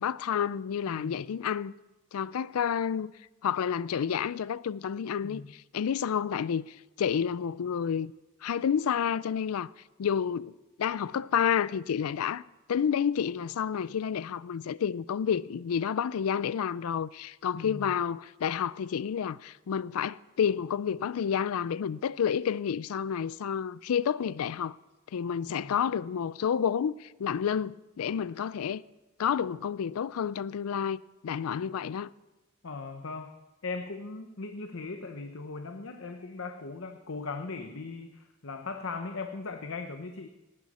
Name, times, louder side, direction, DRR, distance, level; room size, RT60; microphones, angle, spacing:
voice 1, 0.0-1.7 2.1-3.1 3.4-8.1 8.4-9.7 10.0-10.5 10.8-12.4 12.7-24.8 25.1-28.8 29.2-32.1, left 8 dB, 80° left, 0.4 m, -30 dB
voice 2, 0.9-1.4 5.2-5.5 17.5-18.0 25.6-25.7 32.6-33.3 33.6-40.3, left 3 dB, 60° left, 0.8 m, -39 dB
19.0 x 11.0 x 4.2 m
head